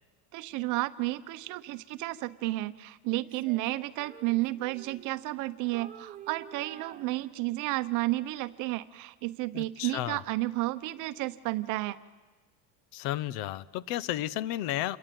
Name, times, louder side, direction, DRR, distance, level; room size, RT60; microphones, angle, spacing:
voice 1, 0.3-12.0, right 19 dB, 50° right, 13 dB, 0.9 m, -32 dB
Female singing, 3.2-5.4 5.7-7.8, right 9 dB, 20° right, 1.0 m, -50 dB
voice 2, 9.5-10.2 12.9-15.0, left 13 dB, 65° left, 20 dB, 0.9 m, -33 dB
28.0 x 22.0 x 9.4 m, 1.3 s
cardioid pair, 155°, 39 cm